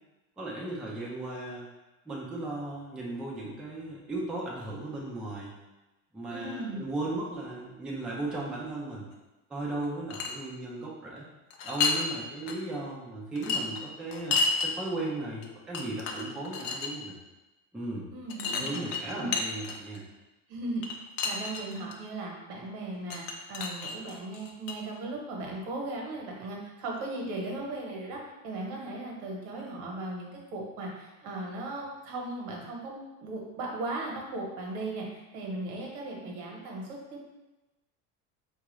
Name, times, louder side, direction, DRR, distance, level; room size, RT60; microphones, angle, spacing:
voice 1, 0.4-1.7 2.1-5.5 6.1-9.1 9.5-11.3 11.6-17.1 17.7-18.1 18.4-20.0, right 2 dB, ahead, -5 dB, 0.4 m, -36 dB
voice 2, 6.3-6.8 18.1-19.3 20.5-20.9 21.2-37.2, right 2 dB, 70° right, -1 dB, 1.1 m, -37 dB
sound 1, 9.8-10.4 11.5-12.1 12.5-12.6 13.4-14.7 15.4-15.5 15.7-16.9 18.3-20.0 20.8-21.9 23.1-24.7, left 4 dB, 55° left, 0.6 m, -31 dB
3.8 x 2.4 x 3.0 m, 1.1 s
supercardioid pair, 130°, 41 cm